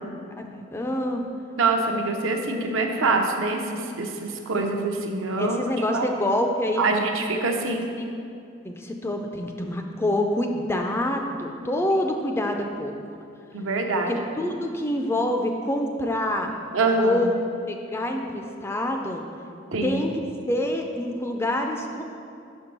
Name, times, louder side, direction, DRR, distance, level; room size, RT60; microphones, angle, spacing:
voice 1, 0.4-1.3 4.6-4.7 5.4-6.8 7.7-7.8 8.6-12.9 13.9-16.6 17.0-17.3 17.7-19.2 19.8-20.1 20.5-22.0, left 1 dB, 10° left, 3 dB, 0.3 m, -26 dB
voice 2, 1.6-5.6 5.9-6.1 6.8-7.9 13.5-14.2 16.7-17.3 19.7-20.0, right 3 dB, 75° right, 3 dB, 0.7 m, -25 dB
6.0 x 4.5 x 5.2 m, 2.5 s
head